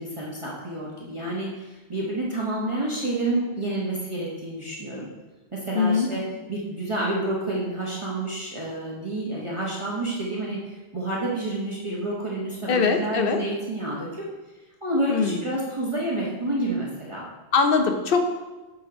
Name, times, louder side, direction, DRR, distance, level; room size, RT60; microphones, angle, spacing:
voice 1, 0.0-5.1 5.5-6.2 6.5-14.2 14.8-17.3, right 1 dB, 30° right, -5 dB, 1.1 m, -29 dB
voice 2, 5.7-6.1 12.7-13.4 15.1-15.4 17.5-18.2, left 5 dB, 60° left, 5 dB, 0.9 m, -21 dB
7.2 x 4.2 x 5.1 m, 1.1 s
omnidirectional pair, 1.1 m